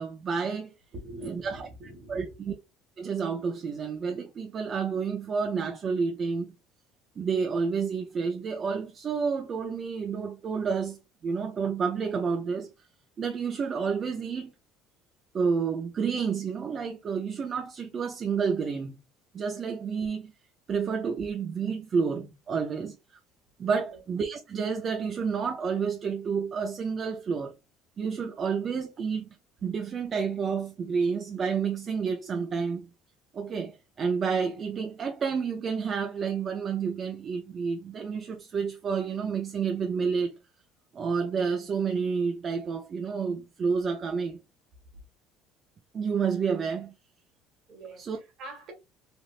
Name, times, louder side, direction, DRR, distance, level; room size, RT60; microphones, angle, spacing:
voice 1, 0.0-0.7 1.2-1.7 2.1-2.5 3.0-6.5 7.2-12.7 13.2-14.5 15.3-19.0 19.3-20.3 20.7-23.2 23.6-27.5 28.0-29.4 29.6-32.9 33.3-40.4 40.9-44.4 45.9-46.9 48.0-48.2, right 5 dB, 40° right, 0.5 m, -30 dB
voice 2, 0.9-2.3 23.8-24.0 47.7-48.7, right 1 dB, 60° right, 1.5 m, -44 dB
3.4 x 2.5 x 2.4 m
supercardioid pair, 105°, 0 cm